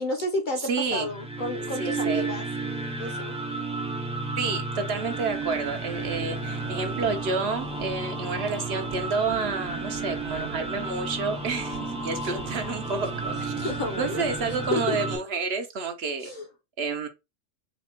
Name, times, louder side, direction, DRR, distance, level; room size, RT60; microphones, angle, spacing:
voice 1, 0.0-2.5 3.0-3.4 12.2-12.3 13.6-14.2 14.7-15.0 16.2-16.5, left 2 dB, 45° left, 0.8 m, -31 dB
voice 2, 0.6-1.1 1.8-2.3 4.4-16.3 16.8-17.1, right 4 dB, 60° right, 0.8 m, -30 dB
sound 1, 0.9-15.2, right 3 dB, 5° right, 0.5 m, -33 dB
sound 2, 4.9-14.7, right 7 dB, 90° right, 1.1 m, -41 dB
4.1 x 2.2 x 4.2 m
omnidirectional pair, 1.3 m